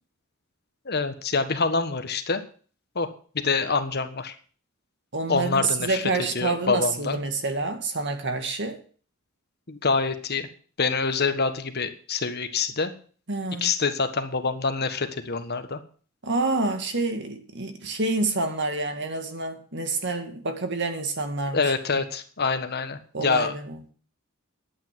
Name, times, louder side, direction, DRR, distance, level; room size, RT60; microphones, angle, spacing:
voice 1, 0.8-2.4 2.9-3.1 3.3-4.3 5.3-6.1 6.3-7.2 9.7-10.5 10.8-12.9 13.6-15.8 21.5-23.5, left 4 dB, 50° left, 1.4 m, -26 dB
voice 2, 5.1-8.8 13.3-13.7 16.2-22.0 23.1-23.8, right 3 dB, 55° right, 2.1 m, -28 dB
11.0 x 8.8 x 7.6 m
head